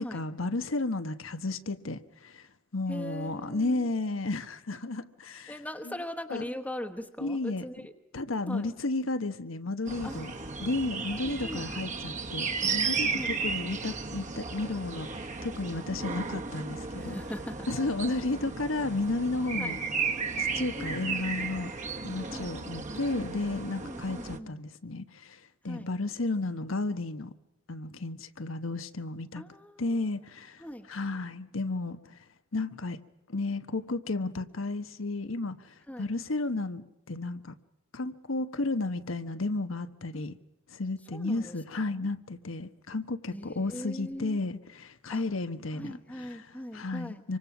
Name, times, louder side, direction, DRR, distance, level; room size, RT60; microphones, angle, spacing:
voice 1, 0.0-2.5 2.7-5.5 5.9-6.0 6.3-6.4 7.2-7.6 8.1-10.3 10.6-17.1 17.7-19.8 20.4-21.7 22.0-27.3 27.7-29.4 29.8-32.2 32.5-33.0 33.3-37.5 37.9-40.4 40.7-46.5 46.7-47.4, left 2 dB, 85° left, 11 dB, 1.3 m, -33 dB
voice 2, 2.9-3.9 5.5-7.9 8.5-8.7 10.0-10.7 11.1-11.7 13.1-13.4 16.9-17.7 19.6-19.8 20.8-21.4 22.3-22.5 23.8-24.6 25.6-25.9 29.4-30.0 30.6-30.9 35.9-36.1 40.1-40.2 41.1-42.1 43.3-44.4 45.1-45.2 45.7-47.2, equal, 5° left, 3 dB, 1.1 m, -41 dB
sound 1, 9.9-24.4, right 4 dB, 40° right, 1.4 m, -34 dB
26.0 x 24.5 x 6.0 m, 0.93 s
head